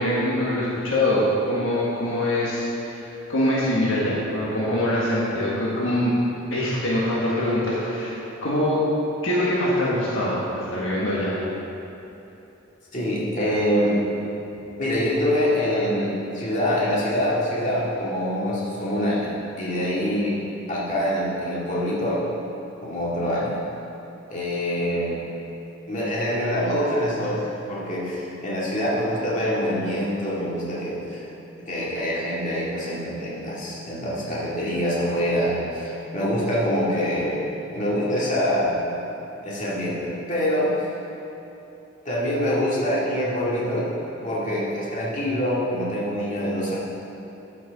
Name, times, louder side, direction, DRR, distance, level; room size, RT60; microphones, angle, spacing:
voice 1, 0.0-3.0 3.3-6.2 6.5-8.8 9.2-11.3, left 1 dB, 70° left, -7 dB, 1.5 m, -23 dB
voice 2, 12.9-14.0 14.8-20.4 20.7-22.2 22.8-23.5 24.3-25.2 25.9-31.2 31.7-37.5 37.7-38.8 39.4-40.7 42.1-43.9 44.2-46.7, equal, 40° left, -7 dB, 2.1 m, -25 dB
12.5 x 6.2 x 4.0 m, 3.0 s
head